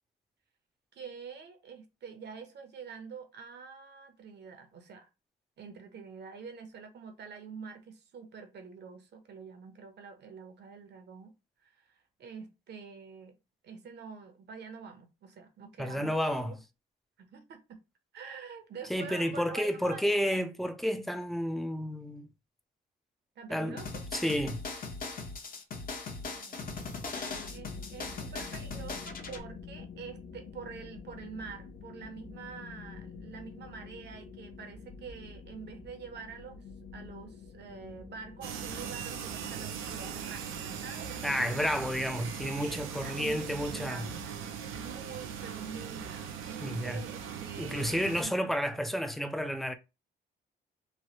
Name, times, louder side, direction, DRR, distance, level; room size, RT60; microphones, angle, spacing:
voice 1, 0.9-5.1 5.6-11.3 11.6-13.4 13.6-16.6 17.2-17.8 18.1-20.4 23.4-24.0 26.3-36.6 36.9-41.7 42.6-44.2 44.7-48.4, right 5 dB, 60° right, 0.8 m, -46 dB
voice 2, 15.8-16.6 18.9-22.3 23.5-23.8 24.1-24.6 41.2-44.1 46.6-47.0 47.6-49.7, equal, ahead, 0.4 m, -31 dB
sound 1, 23.8-29.4, left 4 dB, 45° left, 0.9 m, -39 dB
sound 2, 27.3-47.1, left 5 dB, 70° left, 0.5 m, -49 dB
sound 3, 38.4-48.2, right 8 dB, 85° right, 0.6 m, -40 dB
3.1 x 2.1 x 2.8 m
cardioid pair, 90°, 20 cm